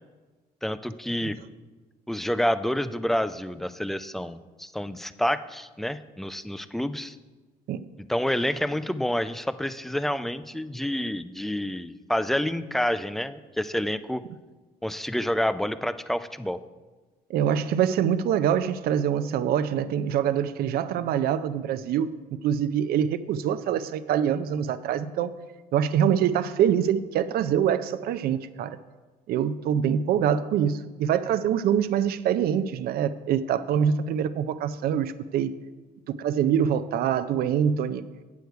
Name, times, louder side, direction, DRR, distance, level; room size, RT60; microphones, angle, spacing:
voice 1, 0.6-1.4 2.1-7.2 8.1-14.2 14.8-16.6, equal, ahead, 13 dB, 0.3 m, -28 dB
voice 2, 17.3-22.1 22.4-25.3 25.7-28.8 29.3-35.5 36.1-38.0, right 9 dB, 70° right, 13 dB, 0.5 m, -25 dB
8.4 x 7.9 x 4.6 m, 1.3 s
cardioid pair, 115°, 16 cm